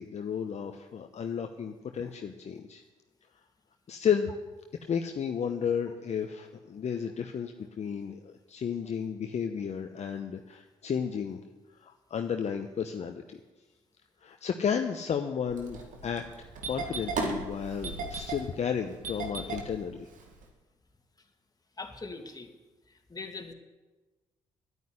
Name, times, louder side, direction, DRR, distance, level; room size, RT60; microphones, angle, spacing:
voice 1, 0.0-2.8 3.9-4.3 4.9-11.4 11.8-13.4 14.2-20.1, left 7 dB, 55° left, 5 dB, 0.9 m, -33 dB
Engine starting, 15.5-20.5, right 4 dB, 70° right, 2.2 m, -36 dB
voice 2, 21.8-22.5 22.9-23.5, left 3 dB, 25° left, 4 dB, 2.4 m, -41 dB
10.0 x 9.3 x 9.9 m, 1.2 s
hypercardioid pair, 45°, 14 cm